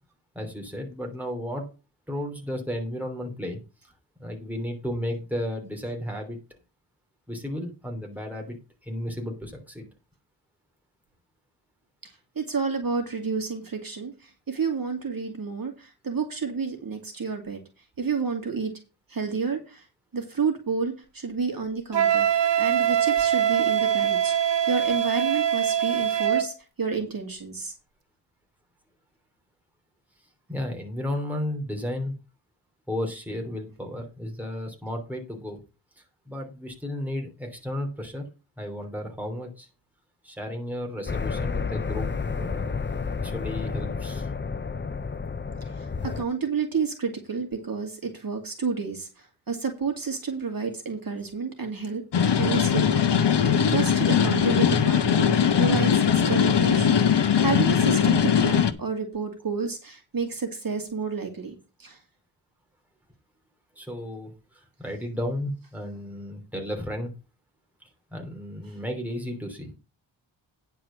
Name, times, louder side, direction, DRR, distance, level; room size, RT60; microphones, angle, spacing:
voice 1, 0.3-1.6 2.1-3.6 4.2-6.4 7.3-8.6 8.8-9.8 30.5-32.1 32.9-35.6 36.2-38.2 38.6-39.7 40.2-42.1 42.4-42.7 43.2-44.3 63.8-67.1 68.1-69.7, left 1 dB, 5° right, 1 dB, 3.0 m, -33 dB
voice 2, 12.0-17.6 18.0-18.7 19.1-19.9 20.1-22.3 22.6-24.3 24.7-27.7 45.6-52.0 52.4-62.0 68.7-68.8, right 5 dB, 50° right, 3 dB, 2.5 m, -30 dB
Wind instrument woodwind instrument, 21.9-26.5, right 9 dB, 65° right, 2.3 m, -23 dB
sound 1, 41.1-46.2, left 5 dB, 25° left, 0.6 m, -30 dB
sound 2, 52.1-58.7, left 8 dB, 65° left, 1.0 m, -20 dB
10.0 x 4.7 x 7.3 m, 0.30 s
wide cardioid pair, 130°, 46 cm